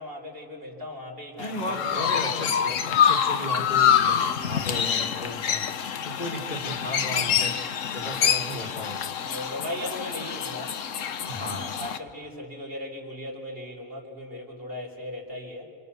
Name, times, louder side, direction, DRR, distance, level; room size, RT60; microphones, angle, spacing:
voice 1, 0.0-2.5 7.4-7.6 9.1-10.8 11.3-15.7, left 1 dB, 40° right, -1 dB, 4.3 m, -38 dB
Chirp tweet, 1.4-12.0, left 8 dB, 60° left, 1.2 m, -26 dB
voice 2, 1.4-5.6 6.0-7.6 7.9-9.0 11.2-11.7, left 1 dB, 25° left, 1 dB, 2.6 m, -35 dB
28.0 x 27.0 x 6.9 m, 2.3 s
omnidirectional pair, 1.6 m